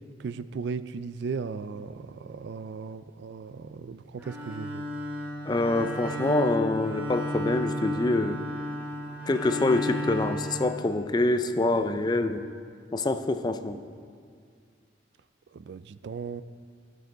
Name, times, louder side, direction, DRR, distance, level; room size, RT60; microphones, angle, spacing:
voice 1, 0.2-4.9 15.5-16.4, right 5 dB, 60° right, 14 dB, 0.3 m, -36 dB
Bowed string instrument, 4.2-11.4, equal, 10° right, 1.4 m, -34 dB
voice 2, 5.5-8.4 9.3-12.4 12.9-13.8, left 2 dB, 20° left, 10 dB, 0.4 m, -25 dB
14.5 x 6.8 x 3.8 m, 2.1 s
head